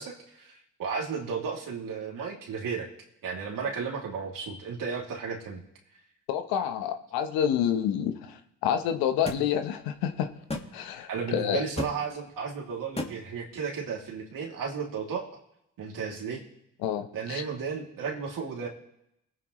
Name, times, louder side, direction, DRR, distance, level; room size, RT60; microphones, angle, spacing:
voice 1, 0.0-2.9 3.2-5.6 11.1-15.2 15.8-16.4 17.1-18.7, right 5 dB, 65° right, -1 dB, 2.8 m, -34 dB
voice 2, 6.3-10.3 10.7-11.6 16.8-17.4, left 9 dB, 85° left, 7 dB, 1.1 m, -28 dB
sound 1, 9.3-9.4 10.5-10.7 11.8-11.9 13.0-13.1, left 2 dB, 15° left, 1.8 m, -32 dB
21.0 x 9.2 x 3.2 m, 0.81 s
hypercardioid pair, 45°, 35 cm